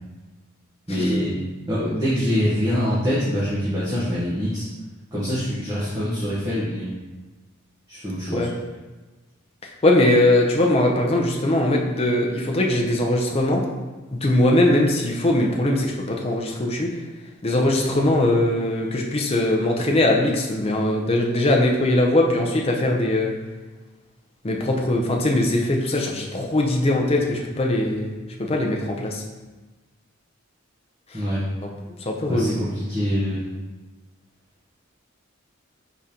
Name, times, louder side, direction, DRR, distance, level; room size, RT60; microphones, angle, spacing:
voice 1, 0.9-1.3 1.7-4.7 5.1-6.9 7.9-8.5 31.1-31.4 32.3-33.4, equal, 20° right, -11 dB, 1.0 m, -24 dB
voice 2, 9.6-13.6 14.1-16.9 17.4-23.4 24.4-28.1 28.4-29.2 31.1-31.2 31.6-32.6, left 1 dB, 30° left, 0 dB, 0.5 m, -21 dB
5.0 x 3.6 x 2.8 m, 1.2 s
head